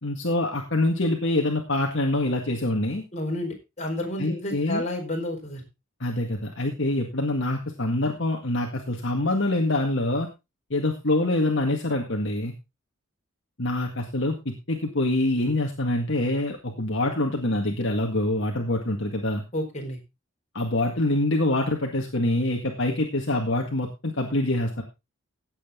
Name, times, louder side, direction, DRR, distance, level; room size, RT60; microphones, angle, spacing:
voice 1, 0.0-3.0 4.2-4.8 6.0-10.3 10.7-12.5 13.6-19.4 20.5-24.8, left 1 dB, 60° left, 1 dB, 1.9 m, -25 dB
voice 2, 3.1-5.6 19.5-20.0, left 1 dB, 35° left, 0 dB, 4.7 m, -30 dB
16.5 x 8.1 x 3.8 m, 0.26 s
head